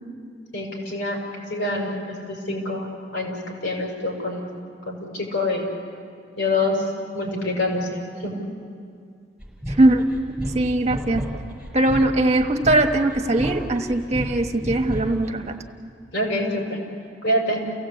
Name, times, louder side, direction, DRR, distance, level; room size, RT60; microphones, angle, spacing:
voice 1, 0.5-2.0 2.3-4.4 4.9-5.7 6.4-6.8 7.1-8.4 16.1-16.8 17.2-17.6, left 2 dB, 90° left, 0 dB, 6.2 m, -26 dB
sound 1, 9.4-15.3, equal, ahead, 5.7 m, -32 dB
voice 2, 9.8-10.1 10.5-11.2 11.7-15.6, right 2 dB, 40° right, 4 dB, 1.3 m, -20 dB
29.5 x 17.0 x 8.6 m, 2.2 s
head